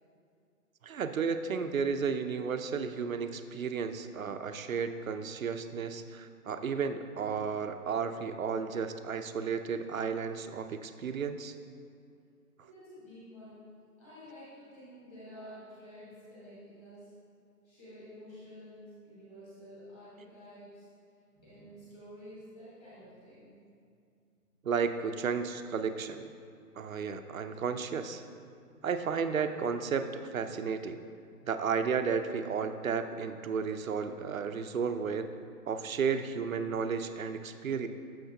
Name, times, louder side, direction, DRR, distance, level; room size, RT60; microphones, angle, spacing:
voice 1, 0.8-11.5 24.6-26.2 26.8-28.2 28.8-31.0 31.4-35.3 35.7-37.9, right 6 dB, 60° right, 8 dB, 0.6 m, -33 dB
voice 2, 12.6-13.6 14.0-17.1 17.6-20.8 21.3-23.5 28.6-28.9, equal, 10° left, -10 dB, 1.3 m, -50 dB
11.5 x 7.1 x 2.7 m, 2.4 s
hypercardioid pair, 165°, 47 cm